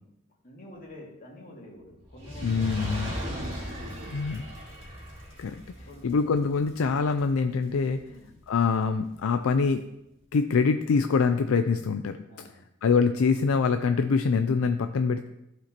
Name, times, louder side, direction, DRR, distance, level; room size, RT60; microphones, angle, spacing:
voice 1, 0.4-4.6 5.8-6.4 8.0-8.4 12.3-12.6, left 1 dB, 40° left, -3 dB, 2.3 m, -48 dB
Fire, 2.0-8.5 9.2-9.3, equal, 25° right, 2.6 m, -38 dB
voice 2, 2.4-3.1 4.1-4.4 5.4-5.6 6.0-8.0 8.5-9.8 10.3-12.2 12.8-15.3, left 5 dB, 75° left, 8 dB, 0.4 m, -24 dB
14.5 x 5.0 x 2.9 m, 0.85 s
head